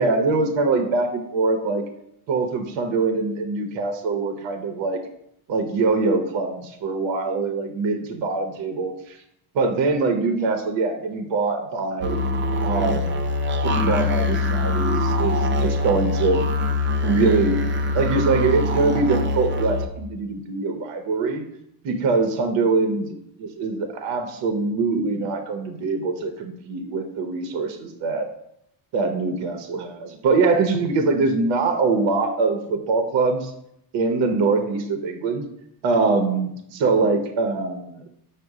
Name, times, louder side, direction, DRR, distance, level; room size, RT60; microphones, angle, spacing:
voice 1, 0.0-1.8 2.3-5.0 5.5-9.2 9.5-12.2 12.6-13.2 13.6-16.5 17.0-17.6 17.9-21.5 21.8-28.3 28.9-33.5 33.9-35.5 35.8-38.1, right 3 dB, 60° right, 6 dB, 0.8 m, -23 dB
sound 1, 12.0-19.9, left 2 dB, 25° right, 0.4 m, -23 dB
5.2 x 2.2 x 4.7 m, 0.75 s
supercardioid pair, 85°, 49 cm